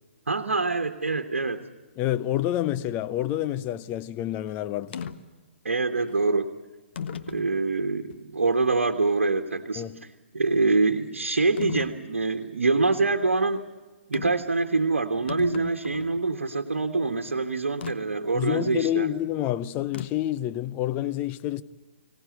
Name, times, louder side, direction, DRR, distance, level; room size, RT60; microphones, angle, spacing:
voice 1, 0.3-1.6 5.6-6.6 7.3-9.9 10.3-13.7 14.1-19.1, right 3 dB, 75° right, 1.4 m, -25 dB
voice 2, 2.0-5.0 9.8-10.0 18.3-21.6, left 13 dB, 25° left, 0.7 m, -28 dB
sound 1, 4.9-5.2 6.1-6.2 6.9-7.5 8.1-8.2 11.6-12.0 14.1-14.5 14.8-14.9 15.1-16.2 17.8-18.0 19.9-20.3, left 7 dB, 55° left, 1.3 m, -35 dB
25.0 x 18.0 x 8.0 m
figure-of-eight pair, 125°, 7 cm